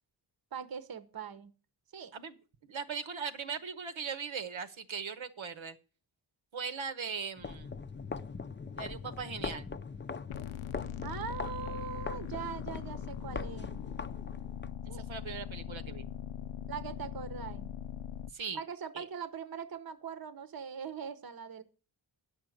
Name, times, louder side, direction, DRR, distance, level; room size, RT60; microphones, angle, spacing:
voice 1, 0.5-1.5 1.9-2.1 2.9-3.0 11.0-13.8 14.9-15.1 16.7-17.7 18.5-21.6, right 7 dB, 50° right, 13 dB, 0.9 m, -41 dB
voice 2, 2.6-5.8 6.5-7.7 8.7-9.7 14.9-16.1 18.3-18.6 18.9-19.0, right 6 dB, 75° right, 10 dB, 1.1 m, -39 dB
sound 1, 7.4-14.7, left 4 dB, 25° left, 0.5 m, -41 dB
sound 2, 10.3-18.3, left 10 dB, 85° left, 0.6 m, -41 dB
10.0 x 6.4 x 6.4 m, 0.35 s
wide cardioid pair, 85°, 47 cm